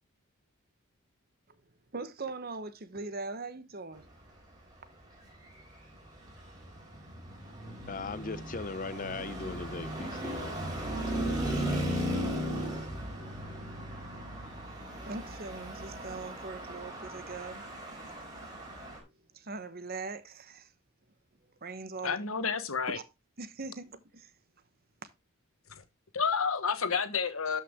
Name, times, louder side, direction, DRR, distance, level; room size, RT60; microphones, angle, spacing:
voice 1, 1.9-4.1 14.8-17.7 19.3-20.7 21.6-22.2 22.9-23.0 23.4-24.3, right 3 dB, 45° right, 1.0 m, -41 dB
Traffic noise roadway noise, 5.3-19.0, equal, 20° right, 3.6 m, -37 dB
voice 2, 7.9-10.6 10.9-11.4, left 3 dB, 40° left, 0.6 m, -39 dB
voice 3, 22.0-23.0 25.7-25.8 26.1-27.6, left 6 dB, 80° left, 1.2 m, -30 dB
12.5 x 5.8 x 3.5 m
head